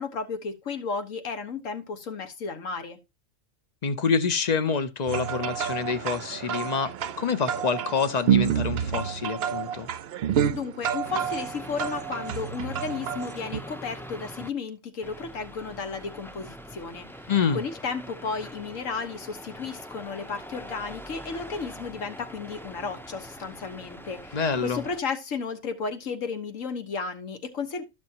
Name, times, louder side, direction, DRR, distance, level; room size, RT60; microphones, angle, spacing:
voice 1, 0.0-3.0 10.5-17.1 17.5-27.8, left 5 dB, 85° left, 1.7 m, -33 dB
voice 2, 3.8-9.9 17.3-17.6 24.3-24.8, left 5 dB, 40° left, 0.7 m, -27 dB
sound 1, 5.1-13.6, right 8 dB, 60° right, 0.7 m, -29 dB
sound 2, 11.0-14.5 15.0-25.0, equal, 5° left, 0.4 m, -43 dB
13.0 x 6.1 x 2.9 m
omnidirectional pair, 1.3 m